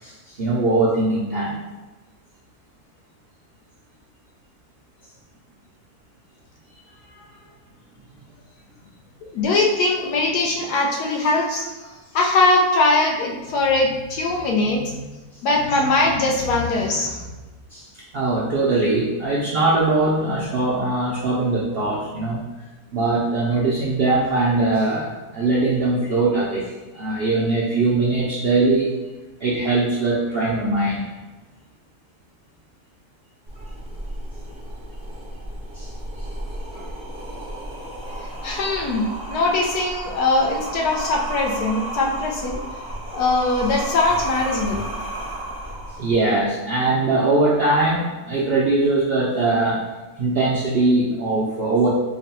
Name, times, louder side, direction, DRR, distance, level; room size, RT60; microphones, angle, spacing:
voice 1, 0.0-1.6 7.1-7.2 17.7-17.9 18.1-22.4 22.9-26.6 26.9-29.0 29.4-31.0 35.7-35.9 36.7-36.9 46.0-49.9 50.2-51.9, right 2 dB, 70° right, -6 dB, 0.5 m, -21 dB
voice 2, 9.3-11.7 12.1-15.0 15.4-17.3 38.4-42.6 43.1-44.8, left 2 dB, 80° left, 0 dB, 1.2 m, -21 dB
sound 1, 33.5-46.4, right 1 dB, 10° right, 0.4 m, -33 dB
3.8 x 2.1 x 4.1 m, 1.2 s
omnidirectional pair, 1.7 m